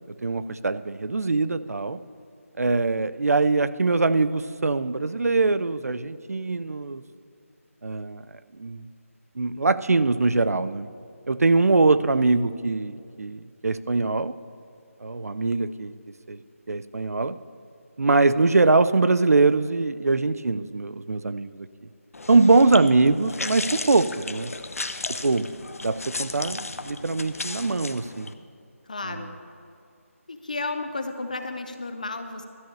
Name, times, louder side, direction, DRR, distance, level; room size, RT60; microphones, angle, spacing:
voice 1, 0.2-2.0 2.6-7.0 7.8-8.2 8.6-8.8 9.4-10.9 11.3-14.3 15.0-15.9 16.3-16.4 16.7-17.4 18.0-21.7 22.3-24.5 25.2-25.5 25.8-28.3 29.0-29.2, right 3 dB, 85° right, 14 dB, 0.5 m, -22 dB
sound 1, 22.1-28.3, left 3 dB, 70° left, 0.8 m, -35 dB
voice 2, 22.5-22.9 28.9-29.4 30.3-32.5, left 3 dB, 30° left, 7 dB, 0.5 m, -33 dB
12.5 x 6.2 x 8.3 m, 2.5 s
figure-of-eight pair, 175°, 8 cm